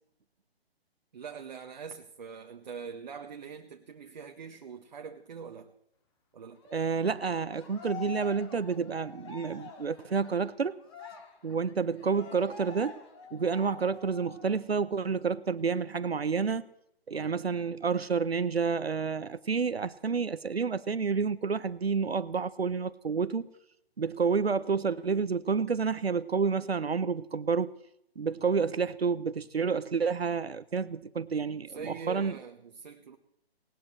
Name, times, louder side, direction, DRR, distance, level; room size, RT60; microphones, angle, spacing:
voice 1, 1.1-5.7 6.3-6.6 17.1-17.3 31.7-33.2, right 6 dB, 45° right, 1.3 m, -43 dB
Cheering, 6.6-14.6 15.0-15.1 15.5-16.5, left 4 dB, 25° left, 2.6 m, -47 dB
voice 2, 6.7-10.8 11.4-13.0 13.3-16.7 17.1-23.5 24.0-27.7 28.2-32.4, right 5 dB, 75° right, 0.9 m, -29 dB
20.0 x 19.0 x 3.3 m
figure-of-eight pair, 140°, 31 cm